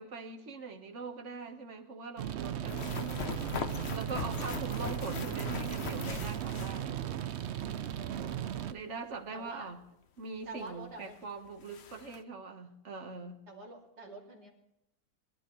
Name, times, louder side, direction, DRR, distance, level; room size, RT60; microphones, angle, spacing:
voice 1, 0.0-3.1 3.9-7.1 8.7-9.8 10.2-13.4, right 4 dB, 50° right, 5 dB, 1.6 m, -42 dB
sound 1, 2.2-8.7, right 10 dB, 65° right, 0.7 m, -36 dB
sound 2, 2.7-7.3 7.6-7.7 10.7-10.8 11.1-11.2 11.5-12.2, left 7 dB, 50° left, 0.9 m, -40 dB
voice 2, 4.1-4.6 7.9-8.5 8.8-8.9 9.3-9.7 10.5-11.2 13.5-14.5, right 2 dB, 80° right, 0 dB, 3.0 m, -47 dB
22.0 x 12.5 x 3.2 m, 0.83 s
omnidirectional pair, 1.7 m